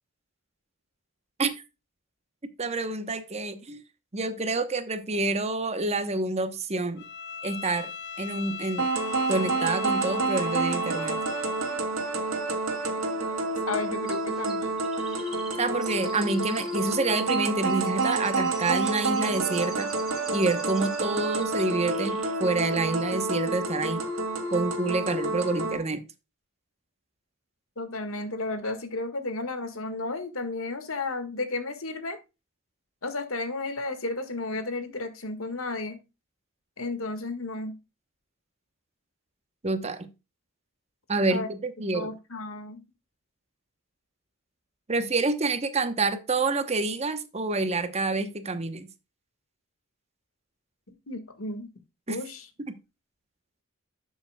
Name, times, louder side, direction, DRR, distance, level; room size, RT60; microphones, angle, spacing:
voice 1, 2.6-3.8 4.1-7.0 7.4-7.9 8.2-8.9 9.3-11.2 15.6-19.9 20.3-24.0 24.5-26.0 39.6-40.1 41.1-42.1 44.9-48.9 52.1-52.2 52.7-52.8, right 3 dB, 30° right, 1.0 m, -28 dB
Bowed string instrument, 7.0-11.8, left 7 dB, 55° left, 0.9 m, -39 dB
sound 1, 8.8-25.8, right 3 dB, 85° right, 2.4 m, -29 dB
voice 2, 13.7-14.7 27.8-32.2 33.0-36.0 36.8-37.7 41.3-41.5 41.9-42.8 51.1-51.7 52.1-52.5, left 3 dB, 85° left, 1.8 m, -33 dB
Chirp tweet, 14.1-21.1 21.4-22.3 22.6-22.7, right 1 dB, 5° right, 3.4 m, -46 dB
11.5 x 7.2 x 2.3 m
head